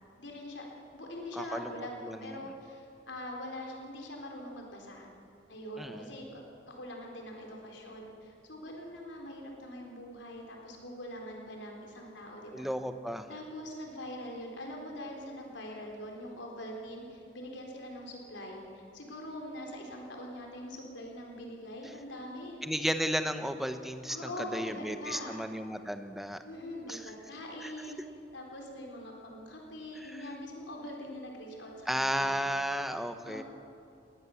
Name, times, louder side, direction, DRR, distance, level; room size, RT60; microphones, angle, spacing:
voice 1, 0.2-0.7 0.9-5.1 5.5-6.4 6.7-12.7 13.3-22.6 24.1-25.4 26.4-28.0 28.3-32.4 33.3-33.4, left 1 dB, 80° left, 1 dB, 4.0 m, -43 dB
voice 2, 1.4-1.7 2.0-2.4 5.8-6.1 12.5-13.3 22.6-26.4 26.9-27.0 27.6-27.7 30.0-30.2 31.9-33.4, equal, ahead, 8 dB, 0.9 m, -34 dB
19.5 x 19.5 x 7.2 m, 2.6 s
head